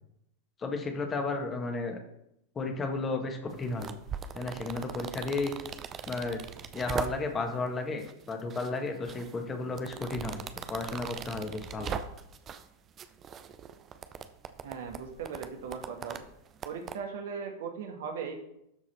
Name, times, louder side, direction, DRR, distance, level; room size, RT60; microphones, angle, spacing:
voice 1, 0.6-2.0 2.6-3.9 4.3-5.5 6.1-6.4 6.7-11.9, left 3 dB, 20° left, 4 dB, 1.7 m, -33 dB
sound 1, 3.5-7.5 8.0-8.7 9.0-12.7 13.0-17.0, right 7 dB, 25° right, 0.6 m, -40 dB
voice 2, 14.6-16.2 16.6-18.4, right 6 dB, 55° right, 4 dB, 1.6 m, -38 dB
12.5 x 4.8 x 4.4 m, 0.79 s
figure-of-eight pair, 90°, 0 cm